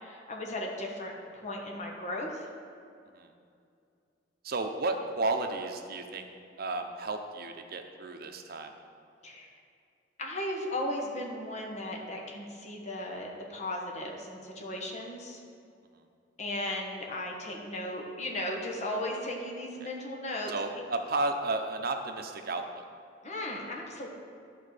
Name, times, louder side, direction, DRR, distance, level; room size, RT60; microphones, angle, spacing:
voice 1, 0.0-2.4 9.2-9.5 10.2-15.4 16.4-20.5 23.2-24.1, left 1 dB, 40° left, -1 dB, 1.4 m, -36 dB
voice 2, 4.4-6.3 6.6-8.7 15.9-16.0 19.8-19.9 20.5-22.8, right 2 dB, 55° right, 5 dB, 0.8 m, -33 dB
11.0 x 4.5 x 6.6 m, 2.4 s
head